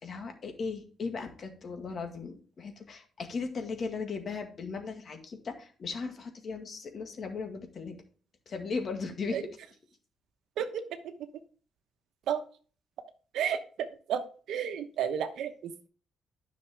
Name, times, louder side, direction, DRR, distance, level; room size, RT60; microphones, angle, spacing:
voice 1, 0.0-8.0 8.5-9.6, left 4 dB, 50° left, 5 dB, 1.9 m, -37 dB
voice 2, 14.5-15.9, right 8 dB, 80° right, 8 dB, 1.0 m, -31 dB
9.8 x 6.1 x 3.5 m, 0.40 s
cardioid pair, 90°, 0 cm